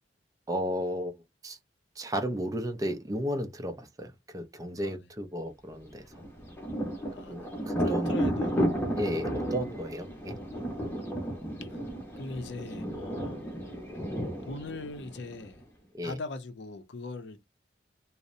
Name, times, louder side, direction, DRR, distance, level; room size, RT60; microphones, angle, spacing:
voice 1, 0.5-1.1 1.4-1.6 2.0-6.2 7.3-8.3 9.0-10.4 15.9-16.2, equal, 20° right, 0.4 m, -34 dB
Thunder, 6.1-15.6, equal, 15° left, 0.8 m, -33 dB
voice 2, 7.1-7.5 7.8-8.7 9.0-9.2 11.7-11.9 12.2-13.8 14.5-15.6 16.0-17.4, left 3 dB, 70° left, 0.5 m, -41 dB
2.6 x 2.0 x 2.4 m
head